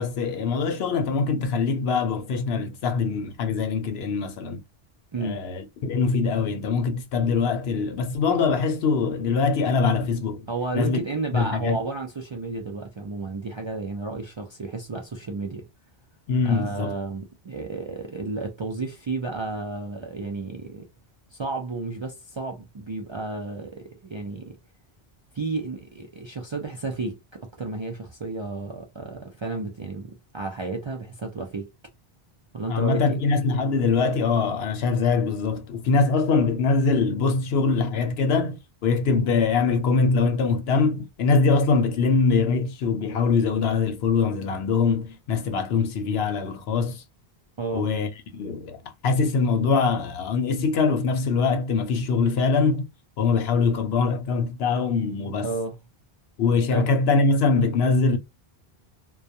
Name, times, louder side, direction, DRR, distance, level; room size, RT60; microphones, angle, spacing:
voice 1, 0.0-4.6 5.2-10.5 10.7-11.0 11.3-11.8 16.3-16.9 32.7-47.0 47.7-52.9 53.2-55.5 56.4-58.2, left 4 dB, 80° left, 0.9 m, -23 dB
voice 2, 5.1-5.4 10.5-15.7 16.4-20.9 21.3-24.6 25.3-31.7 32.5-33.2 47.6-47.9 55.4-55.8 56.7-56.9, right 3 dB, 45° right, 0.3 m, -32 dB
2.3 x 2.2 x 2.6 m
omnidirectional pair, 1.0 m